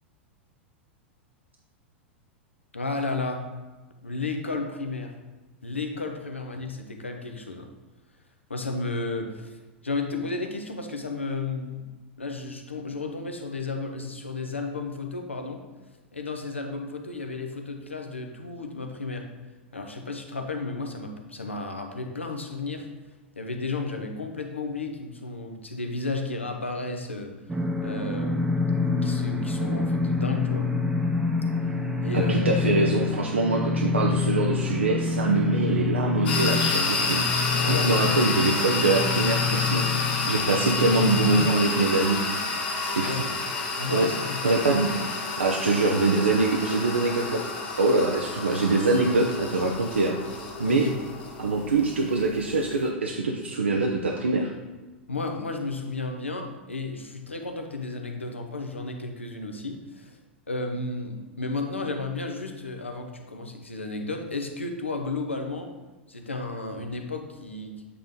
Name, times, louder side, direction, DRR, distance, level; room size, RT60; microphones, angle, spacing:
voice 1, 2.7-3.5 4.0-5.1 5.6-7.7 8.5-9.6 9.8-11.9 12.2-15.7 16.1-19.3 19.7-22.9 23.4-27.4 27.8-28.6 29.0-30.7 32.0-32.6 37.6-38.1 43.0-43.3 43.8-44.4 50.6-51.0 55.1-60.2 60.5-65.7 66.1-67.7, left 3 dB, 85° left, 4 dB, 0.8 m, -33 dB
sound 1, 27.5-41.8, left 4 dB, 10° right, 0.7 m, -27 dB
voice 2, 32.1-42.2 42.9-43.1 43.9-44.1 44.4-44.9 45.4-47.5 47.8-50.2 50.6-50.9 51.4-54.5, right 3 dB, 75° right, 0 dB, 0.6 m, -24 dB
sound 2, 36.3-52.9, left 3 dB, 60° left, 1.2 m, -29 dB
8.3 x 3.8 x 3.6 m, 1.2 s
figure-of-eight pair, 90°, 6 cm